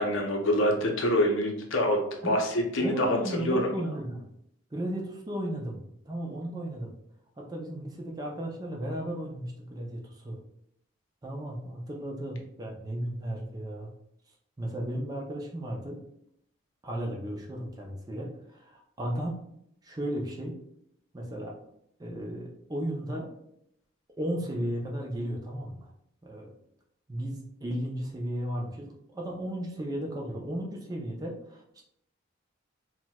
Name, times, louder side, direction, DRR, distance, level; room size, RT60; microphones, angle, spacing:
voice 1, 0.0-2.0 2.2-3.8, left 1 dB, 70° left, 2 dB, 0.6 m, -26 dB
voice 2, 2.8-4.3 4.7-5.8 6.1-6.9 7.4-10.4 11.2-13.9 14.6-16.0 16.8-19.4 19.8-20.6 21.1-21.5 22.0-23.3 24.2-25.9 26.2-26.5 27.1-31.8, right 1 dB, 20° right, -1 dB, 0.4 m, -35 dB
4.2 x 2.1 x 2.2 m, 0.74 s
head